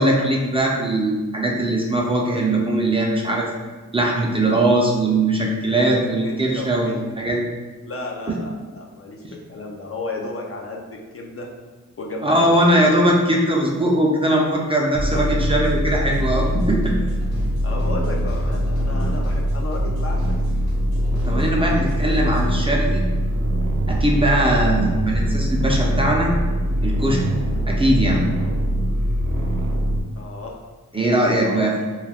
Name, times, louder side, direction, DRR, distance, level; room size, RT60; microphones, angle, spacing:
voice 1, 0.0-3.5 3.9-7.4 12.2-16.9 21.3-23.1 23.9-26.3 26.8-27.3 27.7-28.2 30.9-31.8, right 1 dB, 15° right, -2 dB, 0.5 m, -20 dB
voice 2, 6.2-7.0 7.9-11.5 12.0-12.8 17.6-20.3 20.6-20.8 21.6-21.8 24.4-24.5 30.2-30.6 31.4-31.7, left 3 dB, 40° left, 0 dB, 0.5 m, -33 dB
sound 1, 14.9-22.6, left 1 dB, 85° left, 0.9 m, -37 dB
sound 2, 14.9-30.0, equal, 60° right, 0.7 m, -22 dB
2.3 x 2.2 x 3.4 m, 1.3 s
cardioid pair, 50°, 35 cm